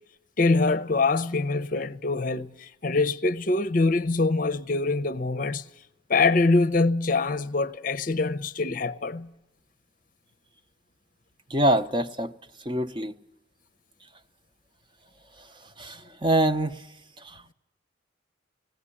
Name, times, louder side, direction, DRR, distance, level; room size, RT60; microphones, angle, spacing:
voice 1, 0.4-5.6 6.1-9.3, left 3 dB, 40° left, 0.7 m, -24 dB
voice 2, 11.5-12.3 12.6-13.1 15.8-16.8 17.2-17.4, right 1 dB, 25° right, 0.8 m, -25 dB
19.0 x 17.0 x 9.9 m
head